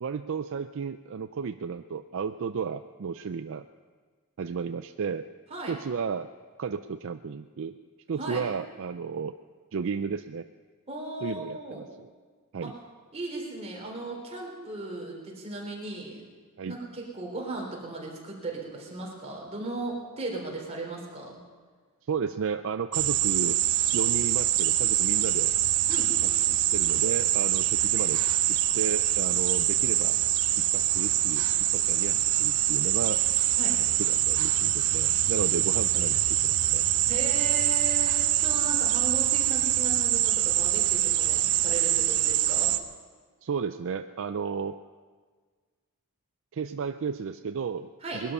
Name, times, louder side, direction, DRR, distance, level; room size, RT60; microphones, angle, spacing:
voice 1, 0.0-3.7 4.4-5.3 5.7-6.3 6.6-7.8 8.1-9.3 9.7-10.5 11.2-11.8 12.5-12.7 16.6-16.8 22.1-23.6 23.9-25.5 26.2-28.2 28.5-30.1 30.7-31.4 31.7-33.2 34.0-36.9 43.4-44.8 46.5-48.3, right 6 dB, 60° right, 9 dB, 0.4 m, -33 dB
voice 2, 10.9-11.8 12.6-12.7 13.1-16.2 16.6-21.4 25.9-26.1 33.6-33.7 37.1-42.7 48.0-48.2, right 2 dB, 30° right, -2 dB, 3.7 m, -36 dB
sound 1, 22.9-42.8, right 13 dB, 80° right, 0.8 m, -24 dB
20.5 x 12.0 x 5.5 m, 1.5 s
head